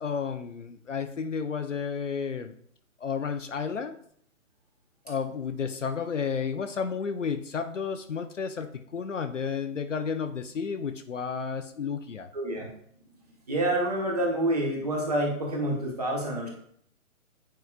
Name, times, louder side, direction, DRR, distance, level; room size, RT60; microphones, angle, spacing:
voice 1, 0.0-2.5 3.0-4.0 5.1-12.3, left 6 dB, 60° left, 8 dB, 0.6 m, -32 dB
voice 2, 12.3-12.7 13.5-16.5, right 1 dB, 25° right, -1 dB, 1.2 m, -27 dB
9.2 x 4.8 x 2.4 m, 0.65 s
hypercardioid pair, 180°, 43 cm